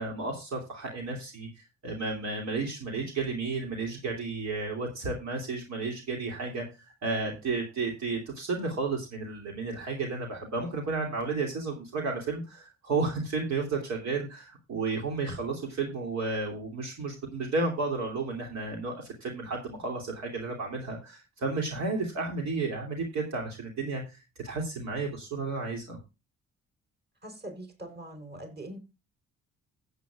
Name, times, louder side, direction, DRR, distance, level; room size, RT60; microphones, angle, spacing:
voice 1, 0.0-6.6 7.0-26.0, right 3 dB, 65° right, 2.9 m, -32 dB
voice 2, 27.2-28.8, right 1 dB, 35° right, 4.4 m, -42 dB
15.5 x 8.3 x 2.4 m
cardioid pair, 90°, 30 cm